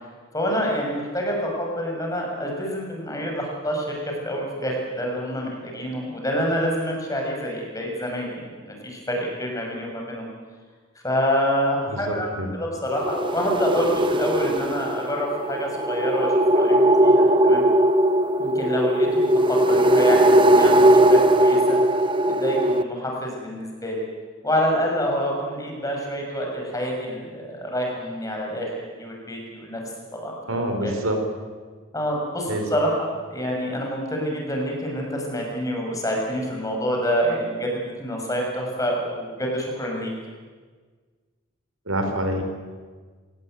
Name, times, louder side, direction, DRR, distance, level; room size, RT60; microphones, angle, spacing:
voice 1, 0.3-10.3 11.0-12.3 12.5-17.6 18.4-21.8 22.2-24.0 24.4-29.8 30.1-30.9 31.9-40.1, equal, 15° left, 0 dB, 6.7 m, -27 dB
voice 2, 11.9-12.5 30.5-31.2 32.5-32.6 41.9-42.4, right 1 dB, 90° right, 5 dB, 4.7 m, -26 dB
sound 1, 12.9-22.8, right 1 dB, 25° right, 0.9 m, -19 dB
28.0 x 18.0 x 9.4 m, 1.5 s
head